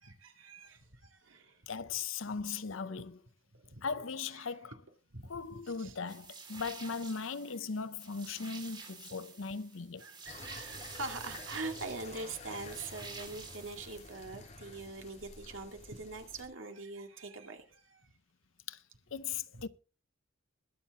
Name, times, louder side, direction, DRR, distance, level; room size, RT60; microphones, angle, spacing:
voice 1, 0.0-1.6 2.2-2.3 3.5-3.9 4.3-4.5 5.1-6.0 10.0-18.1 19.5-19.6, right 3 dB, 75° right, 2.2 m, -44 dB
voice 2, 1.7-3.2 3.8-4.7 5.3-10.0 18.7-18.8 19.1-19.7, left 5 dB, 75° left, 0.7 m, -38 dB
sound 1, 6.1-14.2, right 4 dB, 25° right, 2.1 m, -50 dB
sound 2, 10.3-16.5, left 3 dB, 35° left, 3.4 m, -50 dB
21.5 x 7.5 x 3.6 m
head